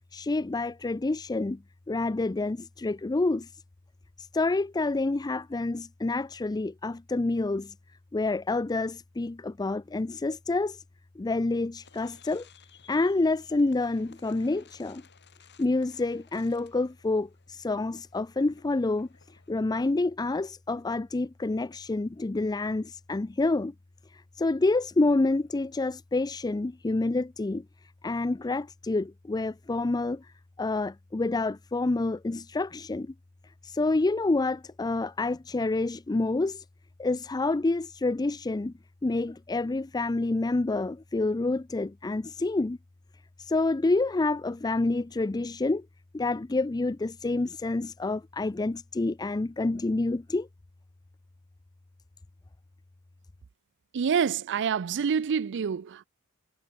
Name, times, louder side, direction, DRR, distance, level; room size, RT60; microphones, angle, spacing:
voice 1, 0.1-3.6 4.2-7.7 8.1-10.8 11.2-12.5 12.9-15.0 15.6-23.7 24.0-33.1 33.4-36.7 37.0-38.7 39.0-42.8 43.4-45.9 46.1-50.5, left 2 dB, 20° left, 0.4 m, -28 dB
sound 1, 11.8-19.5, left 6 dB, 50° left, 7.9 m, -58 dB
voice 2, 53.9-56.0, right 6 dB, 55° right, 0.4 m, -27 dB
head